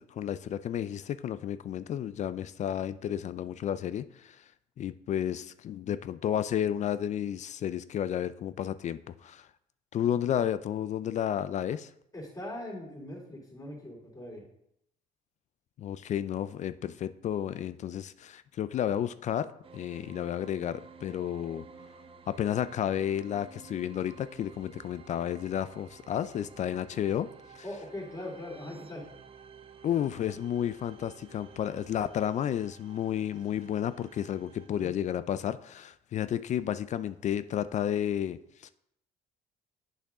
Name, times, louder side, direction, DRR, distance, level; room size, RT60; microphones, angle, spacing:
voice 1, 0.0-4.4 4.8-9.5 9.9-11.9 15.8-19.5 19.7-21.6 22.3-27.3 27.5-27.6 29.8-38.7, left 10 dB, 45° left, 14 dB, 0.4 m, -32 dB
voice 2, 12.1-14.4 27.6-29.0 34.7-34.9, left 1 dB, 20° left, -2 dB, 2.8 m, -41 dB
sound 1, 19.6-34.7, right 6 dB, 35° right, 0.6 m, -52 dB
8.3 x 5.7 x 3.7 m, 0.75 s
cardioid pair, 110°, 17 cm